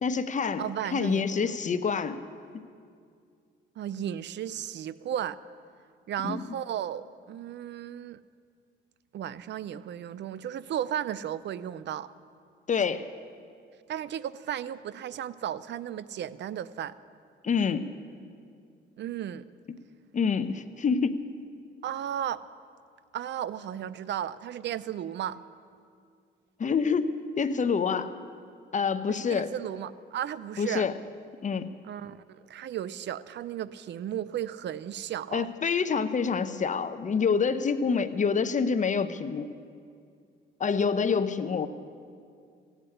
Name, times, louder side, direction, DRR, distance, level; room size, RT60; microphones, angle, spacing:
voice 1, 0.0-0.6 0.9-2.2 6.2-6.4 12.7-13.1 17.4-17.9 20.1-21.2 26.6-28.1 28.7-29.5 30.6-31.0 31.4-31.7 35.3-39.5 40.6-41.7, left 5 dB, 40° left, 11 dB, 0.8 m, -27 dB
voice 2, 0.6-1.5 3.8-5.4 6.1-8.2 9.1-12.1 13.9-16.9 19.0-19.5 21.8-22.4 23.1-25.4 29.1-30.9 31.8-35.5, right 10 dB, 65° right, 17 dB, 0.6 m, -34 dB
15.5 x 8.2 x 9.8 m, 2.3 s
cardioid pair, 90°, 20 cm